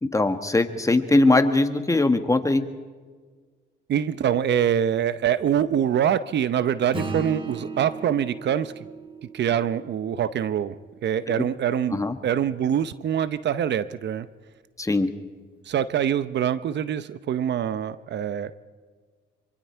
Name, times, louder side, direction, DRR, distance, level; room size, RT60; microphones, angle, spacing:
voice 1, 0.0-2.7 11.3-11.4 11.9-12.1 14.8-15.1, left 2 dB, 15° left, 7 dB, 1.6 m, -21 dB
voice 2, 3.9-8.7 9.3-10.8 11.0-14.3 15.7-18.5, right 9 dB, 60° right, 14 dB, 0.8 m, -24 dB
Acoustic guitar / Strum, 6.9-11.7, right 3 dB, 25° right, 2.5 m, -37 dB
26.0 x 24.0 x 4.5 m, 1.5 s
cardioid pair, 90°, 20 cm